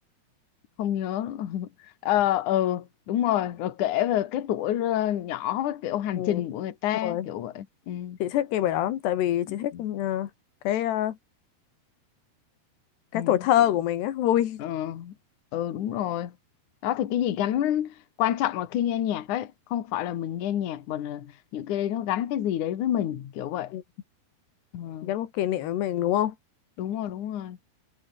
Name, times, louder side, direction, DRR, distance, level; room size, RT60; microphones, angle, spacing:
voice 1, 0.8-1.7 2.0-8.2 9.7-9.8 13.1-13.3 14.6-15.1 15.5-16.3 16.8-23.7 24.7-25.1 26.8-27.6, left 11 dB, 55° left, 2.9 m, -28 dB
voice 2, 8.2-10.3 10.7-11.2 13.1-14.6 23.7-23.8 25.0-26.4, left 12 dB, 90° left, 3.8 m, -25 dB
omnidirectional pair, 4.7 m